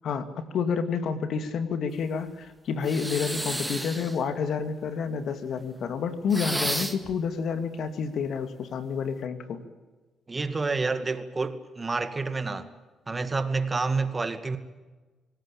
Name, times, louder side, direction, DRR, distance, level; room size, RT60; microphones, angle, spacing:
voice 1, 0.0-9.6 12.5-12.7, left 6 dB, 65° left, 10 dB, 2.5 m, -29 dB
sound 1, 2.8-4.2 6.3-7.1, right 1 dB, 5° right, 2.3 m, -32 dB
voice 2, 10.3-12.7 13.1-14.6, right 3 dB, 25° right, 10 dB, 2.2 m, -28 dB
26.0 x 18.0 x 8.9 m, 1.3 s
cardioid pair, 90°, 0 cm